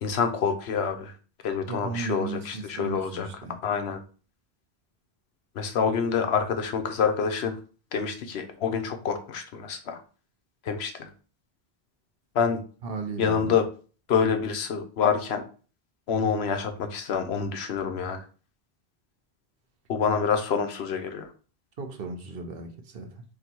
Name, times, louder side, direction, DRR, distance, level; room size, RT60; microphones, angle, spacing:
voice 1, 0.0-1.1 1.4-3.3 3.6-4.0 5.5-7.6 7.9-10.0 10.6-11.1 12.3-12.6 13.2-13.6 14.1-15.4 16.1-18.2 19.9-21.3, left 6 dB, 80° left, 1.0 m, -27 dB
voice 2, 1.7-3.6 12.8-13.6 21.8-23.2, right 4 dB, 65° right, 0.9 m, -35 dB
3.9 x 2.7 x 4.4 m
omnidirectional pair, 1.1 m